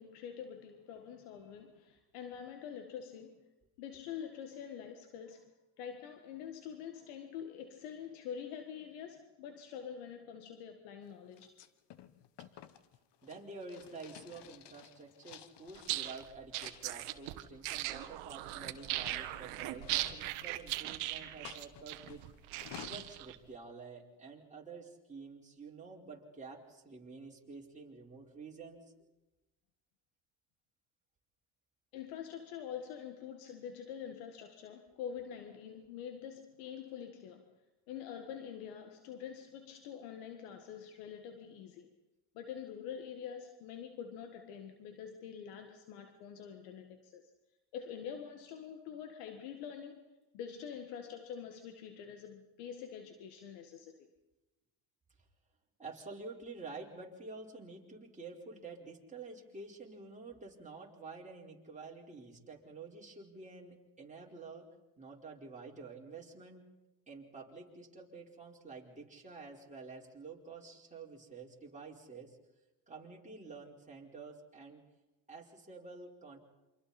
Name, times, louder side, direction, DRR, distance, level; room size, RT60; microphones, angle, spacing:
voice 1, 0.0-3.4 3.8-11.5 31.9-37.5 37.9-41.9 42.3-47.3 47.7-50.0 50.3-54.1, left 8 dB, 85° left, 6 dB, 1.8 m, -46 dB
sound 1, 11.3-16.1 16.5-17.2 18.2-20.9 21.4-23.1, left 11 dB, 55° left, 1.2 m, -54 dB
voice 2, 13.2-22.2 22.7-28.8 55.8-64.7 65.0-66.6 67.1-72.4 72.9-74.8 75.3-76.4, right 4 dB, 15° right, -3 dB, 4.6 m, -49 dB
sound 2, 15.8-23.4, right 16 dB, 80° right, 1.4 m, -39 dB
28.0 x 25.5 x 4.3 m, 1.0 s
supercardioid pair, 95°, 49 cm